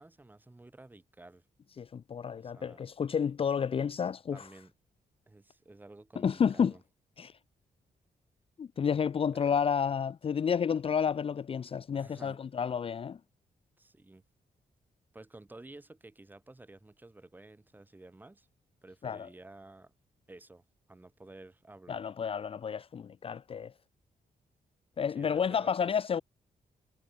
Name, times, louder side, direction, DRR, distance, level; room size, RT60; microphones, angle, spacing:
voice 1, 0.0-1.4 2.4-2.8 4.3-4.7 5.3-6.8 9.3-9.5 11.9-12.4 13.8-14.2 15.1-18.5 18.8-19.9 20.3-20.6 20.9-22.0 25.1-25.9, right 2 dB, 10° right, 6.5 m, -52 dB
voice 2, 1.8-4.5 6.2-6.7 7.2-7.3 8.6-13.2 19.0-19.3 21.9-23.7 25.0-26.2, left 7 dB, 40° left, 0.9 m, -30 dB
wide cardioid pair, 175°, 15 cm